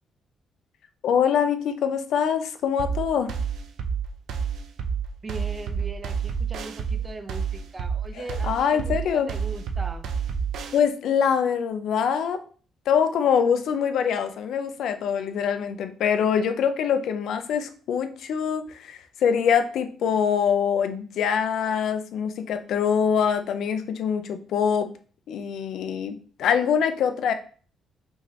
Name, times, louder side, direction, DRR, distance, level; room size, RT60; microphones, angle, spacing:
voice 1, 1.0-3.3 8.3-9.3 10.7-12.4 12.9-24.9 25.3-27.3, left 7 dB, 75° left, 9 dB, 0.5 m, -24 dB
sound 1, 2.8-10.8, right 6 dB, 80° right, 0.5 m, -29 dB
voice 2, 5.2-10.1, right 3 dB, 30° right, 8 dB, 0.7 m, -40 dB
5.6 x 3.1 x 2.8 m, 0.42 s
cardioid pair, 90°, 0 cm